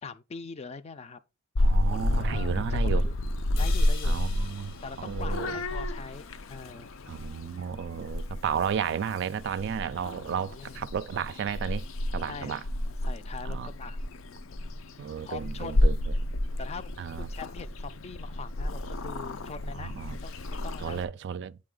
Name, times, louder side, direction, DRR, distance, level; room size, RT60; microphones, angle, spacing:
voice 1, 0.0-1.2 1.9-3.2 3.6-4.2 4.8-6.2 6.5-6.9 10.4-10.8 12.3-12.6 13.0-14.0 15.3-15.9 16.6-19.9 20.2-21.0, left 4 dB, 30° left, 0.4 m, -42 dB
Purr / Meow, 1.5-21.0, left 1 dB, 90° left, 0.5 m, -30 dB
voice 2, 1.6-3.1 4.0-5.6 7.1-11.8 12.1-12.6 13.5-13.7 15.0-16.0 17.0-17.3 19.8-20.2 20.8-21.6, right 7 dB, 60° right, 0.3 m, -33 dB
sound 1, 3.6-7.6, left 7 dB, 70° left, 0.8 m, -48 dB
8.6 x 3.2 x 3.7 m
head